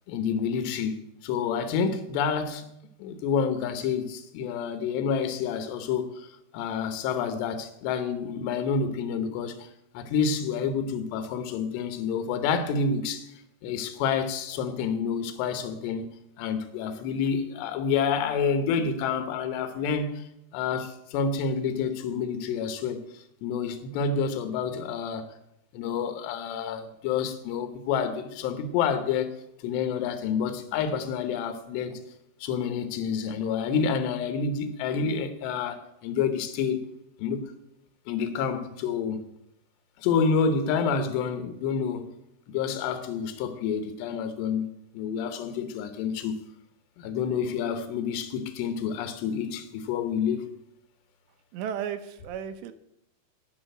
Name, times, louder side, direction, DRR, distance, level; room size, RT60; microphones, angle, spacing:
voice 1, 0.1-2.6 3.0-6.3 6.5-9.7 9.9-13.3 13.6-20.2 20.5-23.0 23.4-25.3 25.7-29.3 29.6-32.0 32.4-36.8 37.2-37.4 38.1-39.2 40.0-42.1 42.5-46.4 47.0-50.5, left 6 dB, 75° left, 3.1 m, -28 dB
voice 2, 51.5-52.7, right 8 dB, 80° right, 2.9 m, -34 dB
10.0 x 6.3 x 8.8 m
omnidirectional pair, 5.1 m